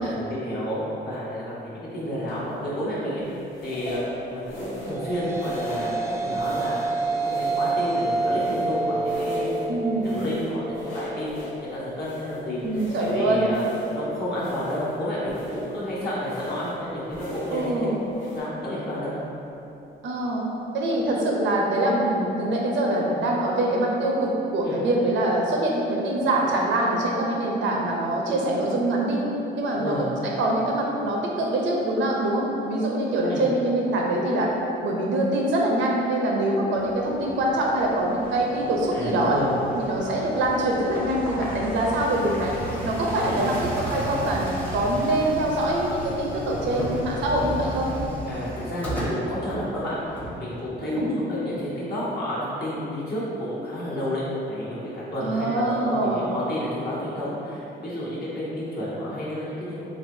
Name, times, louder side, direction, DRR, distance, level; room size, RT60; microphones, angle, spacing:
voice 1, 0.0-6.8 7.1-9.5 10.0-13.6 13.9-17.9 18.3-19.1 24.6-24.7 29.7-30.1 33.3-33.4 38.9-39.5 43.3-43.5 48.3-59.9, equal, 55° left, -9 dB, 1.1 m, -31 dB
sound 1, 2.3-2.6 3.5-4.1 4.4-5.1 5.3-6.0 6.3-6.9 7.2-8.8 9.0-9.7 10.0-11.6 12.0-14.0 14.3-15.0 15.3-15.8 16.2-16.8 17.1-17.7 18.1-18.4, equal, 85° left, 1.2 m, -38 dB
sound 2, 4.7-13.2, right 3 dB, 15° right, 0.3 m, -29 dB
voice 2, 9.7-10.1 12.6-13.5 17.5-18.0 20.0-20.4 20.7-29.2 29.5-34.5 34.8-39.4 39.8-42.6 42.8-47.9 50.8-51.1 55.2-56.2, right 1 dB, 70° right, -1 dB, 0.6 m, -24 dB
sound 3, 36.7-50.9, right 1 dB, 10° left, 0.7 m, -34 dB
3.3 x 2.6 x 2.6 m, 2.9 s
cardioid pair, 90°, 20 cm